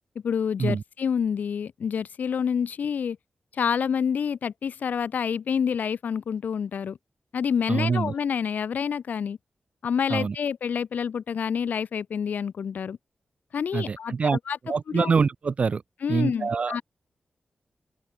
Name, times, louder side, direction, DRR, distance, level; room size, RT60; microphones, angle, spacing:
voice 1, 0.2-3.2 3.6-7.0 7.3-9.4 9.8-13.0 13.5-14.6 14.9-15.1 16.0-16.8, left 7 dB, 75° left, 0.4 m, -28 dB
voice 2, 7.7-8.1 10.1-10.4 13.7-14.4 14.7-15.8 16.1-16.8, right 5 dB, 45° right, 0.3 m, -25 dB
open air
wide cardioid pair, 125°, 3 cm